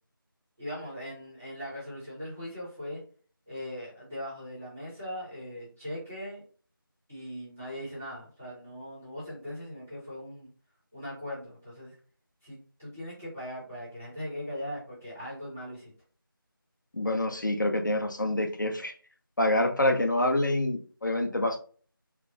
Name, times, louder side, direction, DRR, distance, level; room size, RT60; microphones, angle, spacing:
voice 1, 0.6-3.0 3.5-6.4 7.1-10.5 10.9-11.9 12.4-15.9, equal, 5° right, -11 dB, 0.7 m, -40 dB
voice 2, 16.9-18.9 19.4-21.6, left 1 dB, 55° left, 4 dB, 0.8 m, -26 dB
4.5 x 2.0 x 3.7 m, 0.41 s
figure-of-eight pair, 175°, 12 cm